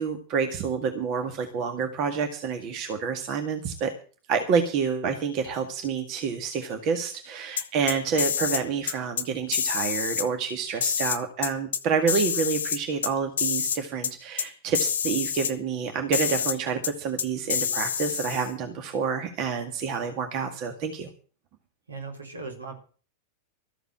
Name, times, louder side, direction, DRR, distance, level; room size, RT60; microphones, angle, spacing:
voice 1, 0.0-3.9 4.3-21.1, right 6 dB, 40° right, 6 dB, 1.9 m, -28 dB
sound 1, 7.6-8.6 8.9-9.2 9.5-10.3 10.8-11.8 12.1-13.1 13.4-13.8 14.0-14.1 14.4-14.5 14.7-15.5 16.1-16.6 16.8-16.9 17.2-18.5, left 7 dB, 65° left, 1.1 m, -27 dB
voice 2, 21.9-22.7, right 4 dB, 75° right, 3 dB, 4.0 m, -38 dB
14.0 x 7.9 x 7.6 m, 0.39 s
figure-of-eight pair, 90°, 0 cm